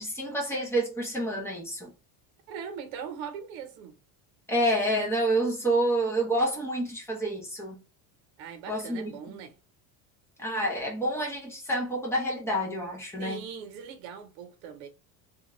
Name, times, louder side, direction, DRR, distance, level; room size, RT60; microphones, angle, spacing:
voice 1, 0.0-1.9 4.5-7.8 8.7-9.4 10.4-13.5, right 1 dB, 5° left, 0.6 m, -28 dB
voice 2, 2.5-4.0 8.4-9.5 13.2-14.9, right 7 dB, 85° right, 0.9 m, -40 dB
2.5 x 2.4 x 3.0 m
cardioid pair, 160°, 47 cm